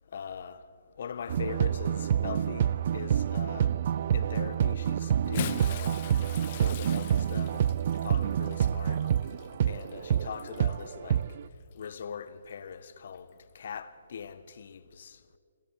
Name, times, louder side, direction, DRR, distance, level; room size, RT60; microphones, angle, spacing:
voice 1, 0.1-0.6 1.0-3.7 4.1-6.0 6.6-7.7 8.0-9.0 9.6-11.2 11.7-13.3 13.5-15.2, left 7 dB, 55° left, 1.4 m, -41 dB
sound 1, 1.3-11.4, right 9 dB, 50° right, 0.6 m, -28 dB
Bathtub (filling or washing) / Splash splatter, 5.1-10.8 11.7-11.9 13.3-13.4, left 12 dB, 40° left, 1.0 m, -42 dB
28.5 x 26.0 x 4.9 m
hypercardioid pair, 145°, 0 cm